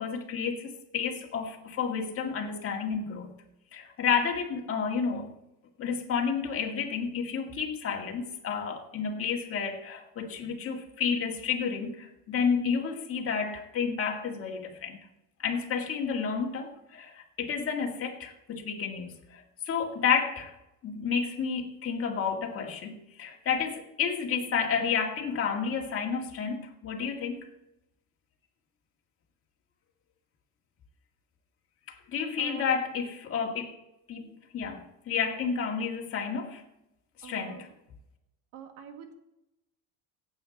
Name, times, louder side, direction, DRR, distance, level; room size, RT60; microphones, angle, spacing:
voice 1, 0.0-3.3 3.7-5.3 5.8-15.0 15.4-20.5 20.8-27.5 32.1-33.7 34.1-36.6 37.2-37.7, left 6 dB, 35° left, 1 dB, 2.1 m, -31 dB
voice 2, 32.4-32.8 37.2-37.6 38.5-39.1, right 8 dB, 70° right, 5 dB, 2.0 m, -44 dB
16.5 x 8.3 x 4.2 m, 0.88 s
cardioid pair, 150°, 40 cm